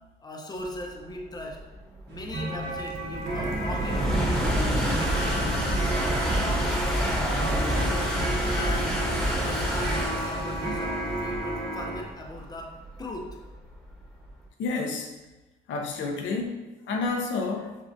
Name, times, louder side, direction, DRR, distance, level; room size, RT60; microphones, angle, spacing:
voice 1, 0.2-1.6 2.1-4.6 5.9-6.7 7.1-7.8 8.5-13.4, left 1 dB, 20° left, 0 dB, 0.7 m, -39 dB
sound 1, 0.9-14.3, equal, ahead, 1.1 m, -28 dB
sound 2, 2.1-12.0, right 1 dB, 60° right, 1.1 m, -33 dB
sound 3, 2.6-8.3, right 3 dB, 80° right, 0.7 m, -39 dB
voice 2, 14.6-15.1 15.7-17.8, left 3 dB, 70° left, 1 dB, 0.7 m, -30 dB
7.2 x 2.4 x 2.7 m, 1.1 s
cardioid pair, 90°, 20 cm